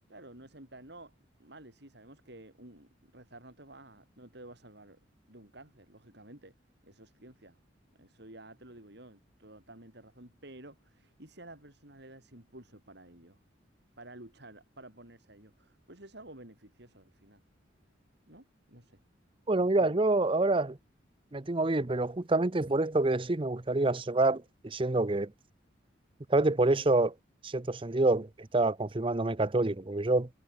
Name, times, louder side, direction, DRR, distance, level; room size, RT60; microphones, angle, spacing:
voice 1, 0.1-1.1 1.4-5.0 5.3-6.5 6.8-7.6 8.0-13.4 14.0-17.4 18.3-19.0 19.6-20.0, right 1 dB, 60° right, 5.5 m, -52 dB
voice 2, 19.5-20.8 21.3-25.3 26.3-27.1 27.4-30.3, right 2 dB, 30° right, 0.7 m, -27 dB
head